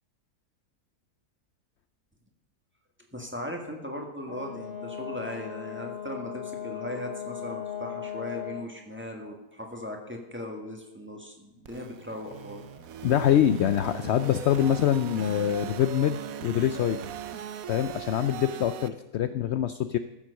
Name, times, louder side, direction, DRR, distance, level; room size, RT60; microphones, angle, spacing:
voice 1, 3.1-12.9, left 1 dB, 10° right, 1 dB, 1.5 m, -38 dB
Brass instrument, 4.3-8.7, left 9 dB, 35° left, 1.4 m, -37 dB
sound 1, 11.7-18.9, right 9 dB, 70° right, 1.1 m, -39 dB
voice 2, 13.0-17.0 17.7-20.0, left 10 dB, 75° left, 11 dB, 0.6 m, -25 dB
14.0 x 7.4 x 6.4 m, 0.97 s
omnidirectional pair, 1.6 m